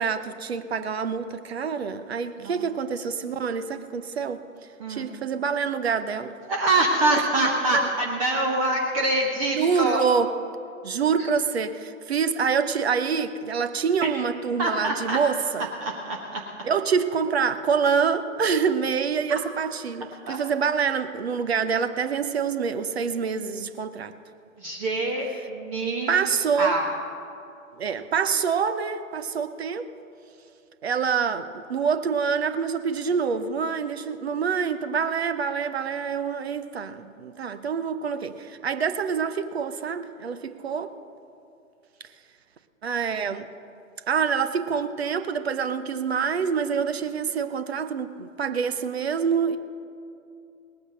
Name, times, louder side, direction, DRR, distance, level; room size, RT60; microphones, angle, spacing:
voice 1, 0.0-4.4 4.9-6.4 7.7-7.8 9.6-10.3 10.8-15.7 16.6-24.1 26.1-26.8 27.8-29.9 30.8-40.9 42.8-43.5 44.1-49.6, right 6 dB, 50° right, 0.9 m, -26 dB
voice 2, 2.4-2.7 3.0-3.1 4.8-5.1 6.5-10.0 11.2-11.3 14.6-15.2 15.8-16.4 19.3-19.4 20.3-20.4 24.6-26.1 26.6-26.8, right 2 dB, 25° right, 1.1 m, -25 dB
19.0 x 9.7 x 6.4 m
figure-of-eight pair, 125°, 41 cm